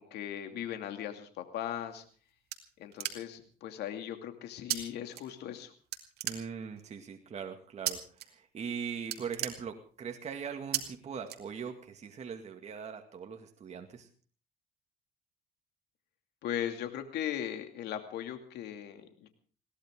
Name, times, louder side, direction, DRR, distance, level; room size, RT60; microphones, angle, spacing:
voice 1, 0.0-2.0 2.8-5.7 16.4-19.3, left 10 dB, 80° left, 6 dB, 2.6 m, -38 dB
sound 1, 1.8-3.5 4.7-4.8 5.1-5.6 5.9-6.9 7.9-8.3 8.6-8.7 9.0-10.2 10.7-10.8 11.3-11.9, right 13 dB, 70° right, 2.3 m, -36 dB
voice 2, 6.2-14.1, right 6 dB, 40° right, 4 dB, 2.2 m, -41 dB
21.5 x 17.5 x 3.8 m, 0.41 s
cardioid pair, 110°, 17 cm